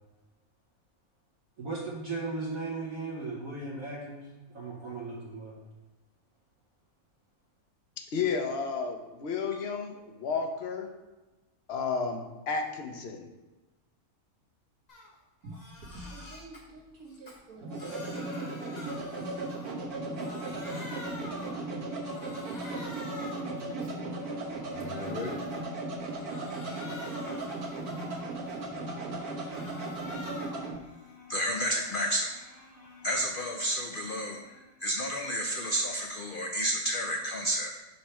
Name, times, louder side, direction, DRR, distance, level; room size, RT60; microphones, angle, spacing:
voice 1, 1.6-4.3 4.5-5.5, right 3 dB, 65° right, -6 dB, 1.4 m, -36 dB
voice 2, 8.1-10.9 11.7-12.2 12.5-13.3, left 5 dB, 55° left, 4 dB, 0.9 m, -32 dB
Crying sobbing, 14.9-15.1 15.4-16.6 17.1-19.9 20.1-21.7 22.0-23.6 24.0-25.6 26.0-28.4 28.8-30.7 31.1-33.5, left 1 dB, 30° left, 1.1 m, -47 dB
sound 1, 15.4-30.8, right 2 dB, 90° right, 1.6 m, -37 dB
voice 3, 24.7-25.4 28.8-37.8, equal, 70° left, 2 dB, 0.5 m, -33 dB
5.4 x 3.3 x 5.6 m, 1.1 s
omnidirectional pair, 1.5 m